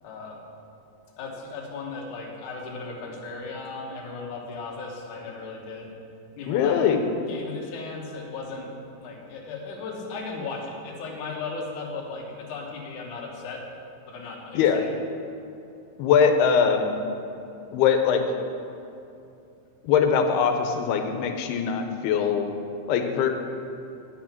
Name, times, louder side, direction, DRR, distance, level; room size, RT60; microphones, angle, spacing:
voice 1, 0.0-0.4 1.2-6.0 6.4-6.9 7.3-8.7 9.0-13.6 14.1-14.9, left 4 dB, 60° left, -1 dB, 2.4 m, -36 dB
voice 2, 6.5-7.0 14.5-14.8 16.0-16.9 17.7-18.2 19.8-22.5 22.9-23.3, left 7 dB, 90° left, 6 dB, 2.8 m, -21 dB
11.0 x 6.8 x 5.9 m, 2.7 s
omnidirectional pair, 4.4 m